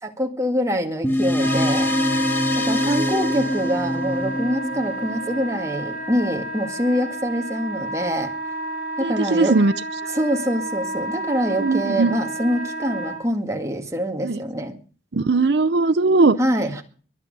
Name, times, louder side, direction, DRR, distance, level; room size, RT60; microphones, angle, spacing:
voice 1, 0.0-1.9 2.6-8.3 9.0-9.5 10.1-14.8 16.4-16.8, equal, 20° right, 3 dB, 1.9 m, -25 dB
sound 1, 1.0-5.8, left 1 dB, 10° left, 1.5 m, -24 dB
Wind instrument woodwind instrument, 1.4-13.2, right 1 dB, 50° left, 6.5 m, -30 dB
voice 2, 9.0-9.7 11.6-12.1 14.2-14.4 15.1-16.4, right 3 dB, 70° right, 13 dB, 0.6 m, -19 dB
22.5 x 8.7 x 5.3 m, 0.41 s
head